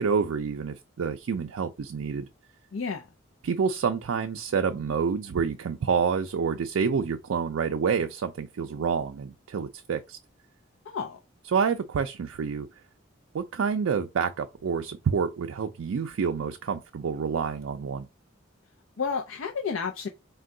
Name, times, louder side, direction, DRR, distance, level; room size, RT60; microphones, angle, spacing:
voice 1, 0.0-2.3 3.4-10.2 11.5-12.7 13.3-18.1, right 6 dB, 90° right, 0.4 m, -28 dB
voice 2, 2.7-3.1 10.9-11.2 19.0-20.1, left 5 dB, 85° left, 0.5 m, -31 dB
4.4 x 2.2 x 3.7 m
head